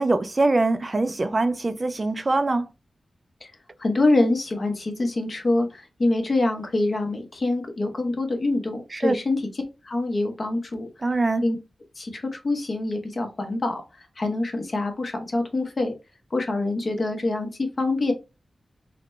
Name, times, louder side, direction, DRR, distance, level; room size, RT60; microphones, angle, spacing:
voice 1, 0.0-2.6 9.0-9.1 11.0-11.4, right 2 dB, 35° right, 0.3 m, -23 dB
voice 2, 3.8-10.9 11.4-11.6 12.0-13.8 14.2-15.9 16.3-18.1, left 2 dB, 45° left, 0.9 m, -25 dB
3.9 x 2.2 x 3.1 m
wide cardioid pair, 85°, 0 cm